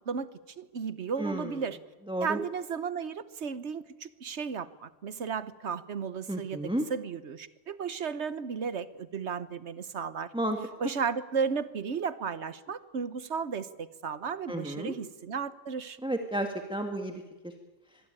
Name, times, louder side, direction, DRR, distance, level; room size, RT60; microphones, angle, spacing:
voice 1, 0.1-1.8 2.2-6.6 6.9-10.3 10.8-16.0, right 6 dB, 65° right, 14 dB, 1.3 m, -34 dB
voice 2, 1.2-1.6 2.1-2.4 6.3-6.9 10.3-10.6 14.5-15.0 16.0-17.5, right 1 dB, 5° right, 4 dB, 1.6 m, -32 dB
25.0 x 22.0 x 9.0 m, 1.2 s
omnidirectional pair, 1.3 m